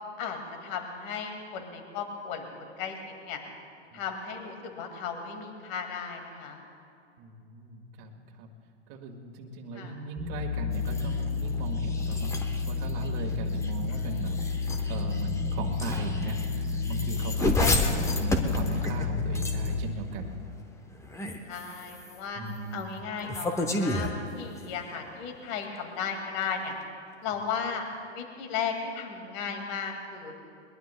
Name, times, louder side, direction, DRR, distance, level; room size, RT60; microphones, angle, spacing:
voice 1, 0.2-3.4 3.9-6.6 9.7-9.9 17.6-18.1 21.5-22.4 22.7-26.7 27.2-27.8 28.1-30.3, left 6 dB, 40° left, 4 dB, 2.1 m, -35 dB
voice 2, 7.2-8.1 8.4-8.5 8.9-12.3 12.7-14.4 14.6-20.4 22.4-22.9 27.3-27.4, right 2 dB, 40° right, 1 dB, 1.8 m, -38 dB
sound 1, 10.2-19.8, left 4 dB, 15° right, 1.3 m, -31 dB
sound 2, 10.7-19.9 20.9-22.2 23.2-24.8, left 2 dB, 10° left, 0.9 m, -32 dB
22.0 x 21.0 x 2.2 m, 2.5 s
hypercardioid pair, 125°, 35 cm